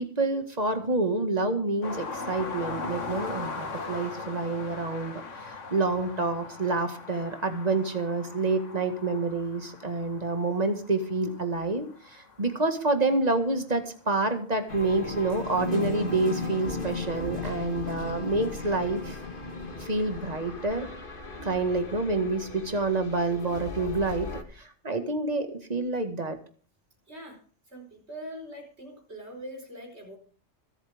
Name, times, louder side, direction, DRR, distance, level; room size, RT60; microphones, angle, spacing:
voice 1, 0.0-5.1 5.5-19.2 19.8-20.9 21.4-24.3 24.5-26.4, right 3 dB, 35° right, 6 dB, 2.0 m, -28 dB
sound 1, 1.8-13.3 14.7-14.8, left 4 dB, 85° left, 2.0 m, -40 dB
sound 2, 14.7-24.4, left 3 dB, 45° left, 1.9 m, -36 dB
voice 2, 27.1-27.4 27.7-30.2, equal, 60° right, 2 dB, 5.1 m, -42 dB
25.0 x 8.4 x 3.6 m, 0.42 s
omnidirectional pair, 1.2 m